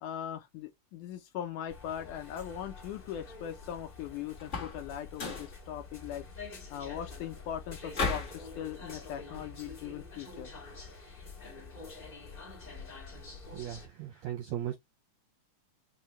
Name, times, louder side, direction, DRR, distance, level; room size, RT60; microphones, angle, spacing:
voice 1, 0.0-10.5, left 10 dB, 80° left, 1.9 m, -40 dB
sound 1, 1.7-13.9, left 4 dB, 25° left, 0.9 m, -47 dB
sound 2, 4.4-4.8 5.1-5.5 7.9-8.4, left 4 dB, 55° left, 0.7 m, -33 dB
voice 2, 13.5-14.8, right 11 dB, 80° right, 1.6 m, -37 dB
5.4 x 2.2 x 2.9 m
omnidirectional pair, 3.9 m